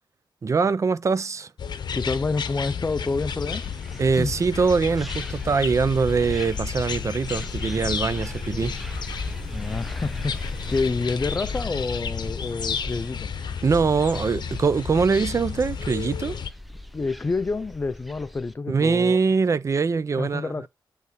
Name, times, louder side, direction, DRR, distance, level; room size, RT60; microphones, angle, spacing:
voice 1, 0.4-1.5 4.0-8.8 13.6-16.4 18.7-20.5, right 5 dB, 35° right, 0.5 m, -23 dB
sound 1, 1.6-16.5, left 7 dB, 60° left, 0.9 m, -32 dB
voice 2, 1.9-3.7 4.2-4.3 9.5-13.3 16.3-16.4 16.9-19.2 20.1-20.7, left 3 dB, 25° left, 0.3 m, -28 dB
sound 2, 2.9-18.5, left 1 dB, ahead, 0.7 m, -39 dB
8.3 x 3.3 x 4.1 m
wide cardioid pair, 100°, 8 cm